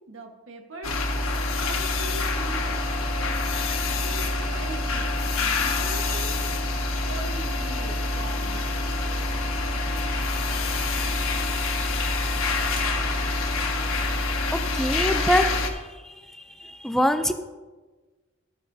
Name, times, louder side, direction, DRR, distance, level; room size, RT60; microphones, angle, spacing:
voice 1, 0.1-1.0 1.6-2.7 3.2-3.4 3.8-6.3 7.0-8.9, right 2 dB, 65° right, 3 dB, 1.4 m, -41 dB
sound 1, 0.8-15.7, left 2 dB, 75° left, 1.6 m, -26 dB
voice 2, 14.5-17.3, equal, ahead, 7 dB, 0.5 m, -25 dB
14.0 x 12.5 x 2.8 m, 1.3 s
head